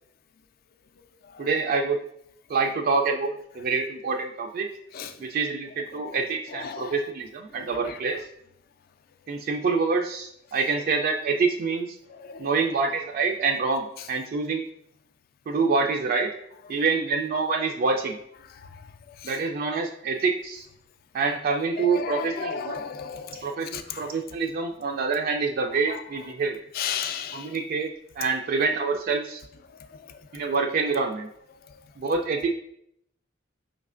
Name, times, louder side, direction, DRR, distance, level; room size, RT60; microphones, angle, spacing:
voice 1, 1.4-2.0 2.5-4.7 5.2-8.2 9.3-12.0 12.4-14.6 15.5-16.3 16.7-18.2 19.2-20.6 21.1-22.8 23.4-23.7 24.0-26.5 27.3-29.4 30.3-31.3 32.0-32.5, right 4 dB, 50° right, 0.3 m, -26 dB
voice 2, 6.6-7.0 7.9-8.0 12.1-12.5 19.2-19.3 21.8-23.5 23.7-24.1 25.9-26.0 26.7-27.5, left 7 dB, 50° left, 0.3 m, -34 dB
4.9 x 3.2 x 2.4 m
head